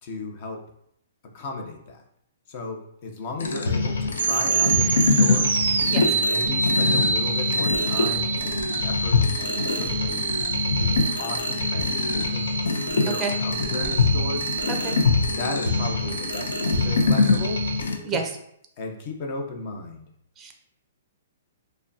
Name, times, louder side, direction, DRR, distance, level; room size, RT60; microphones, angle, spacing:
voice 1, 0.0-0.6 1.3-2.0 2.5-5.6 6.0-10.4 11.1-12.5 12.9-14.5 15.2-16.5 16.8-17.6 18.8-20.1, left 3 dB, 40° left, 2 dB, 0.7 m, -34 dB
sound 1, 3.4-17.9, left 4 dB, 90° left, 0.5 m, -24 dB
sound 2, 4.1-17.8, right 4 dB, 85° right, 0.3 m, -27 dB
voice 2, 5.9-6.1 13.1-13.3 14.7-15.0 18.0-18.3 20.4-20.5, right 4 dB, 15° right, 4 dB, 0.5 m, -29 dB
4.9 x 2.2 x 2.7 m, 0.73 s
hypercardioid pair, 155°, 0 cm